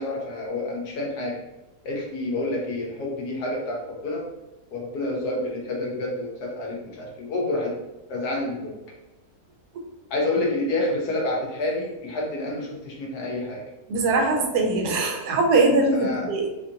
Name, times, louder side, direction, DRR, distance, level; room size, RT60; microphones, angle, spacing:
voice 1, 0.0-1.4 1.8-4.3 4.7-7.7 8.1-8.7 10.1-13.6 15.9-16.3, left 2 dB, 75° left, -2 dB, 1.4 m, -28 dB
voice 2, 13.9-16.5, right 3 dB, 80° right, 2 dB, 1.2 m, -21 dB
4.1 x 2.5 x 2.8 m, 1.0 s
omnidirectional pair, 1.7 m